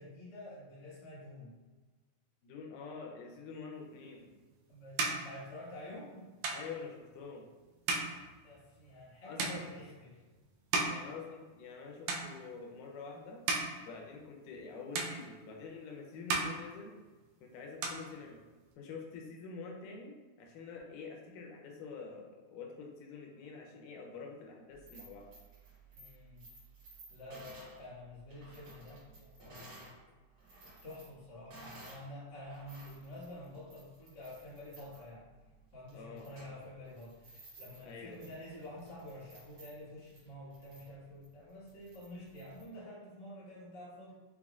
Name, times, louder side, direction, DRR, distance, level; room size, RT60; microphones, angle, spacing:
voice 1, 0.0-1.6 4.7-6.3 7.9-10.2 25.9-26.4 27.1-29.9 30.8-35.3 35.7-44.1, left 1 dB, 45° left, -9 dB, 0.7 m, -49 dB
voice 2, 2.4-4.3 6.5-7.5 9.2-9.6 10.9-13.4 13.8-17.0 17.4-18.4 18.8-25.3 35.9-36.3 37.8-38.2, left 4 dB, 90° left, 1 dB, 2.2 m, -47 dB
sound 1, 4.1-11.8 12.0-12.8 13.2-14.7 14.9-15.8 16.1-17.4 17.6-18.7, right 3 dB, 85° right, 1.5 m, -38 dB
sound 2, 24.7-30.0 30.3-32.1 32.4-42.7, right 2 dB, 55° right, 1.2 m, -56 dB
6.1 x 2.0 x 2.3 m, 1.3 s
omnidirectional pair, 3.6 m